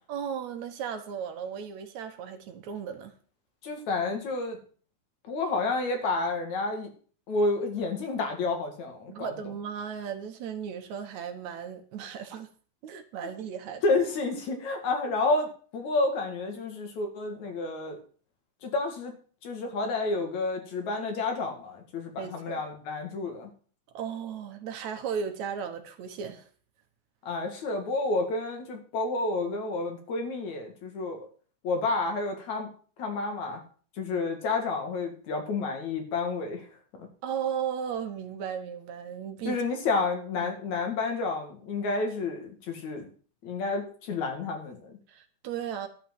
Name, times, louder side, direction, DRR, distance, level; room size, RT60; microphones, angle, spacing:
voice 1, 0.1-3.1 9.1-12.5 12.8-13.8 22.2-22.6 23.9-26.5 37.2-39.6 40.4-40.5 45.1-45.9, right 7 dB, 70° right, 2.4 m, -35 dB
voice 2, 3.6-4.6 5.3-6.9 7.3-9.3 13.8-18.0 18.6-19.1 19.4-23.5 27.2-31.3 31.6-32.7 33.0-33.6 34.0-36.7 36.9-37.1 39.4-43.1 43.4-45.0, left 3 dB, 70° left, 3.3 m, -30 dB
11.5 x 5.8 x 7.6 m
omnidirectional pair, 3.5 m